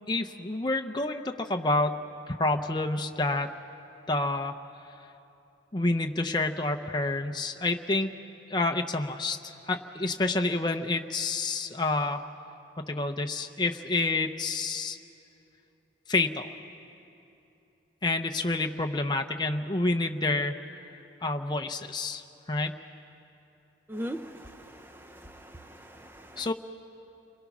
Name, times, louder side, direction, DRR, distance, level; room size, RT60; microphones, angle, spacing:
voice 1, 0.1-2.0 2.3-3.5 4.1-4.6 5.7-8.1 8.5-12.2 12.8-15.0 16.1-16.5 18.0-20.6 21.2-22.8 26.4-26.5, left 2 dB, 25° left, 4 dB, 0.6 m, -28 dB
voice 2, 23.9-26.5, equal, 10° right, 8 dB, 0.7 m, -41 dB
29.0 x 21.5 x 6.0 m, 2.8 s
head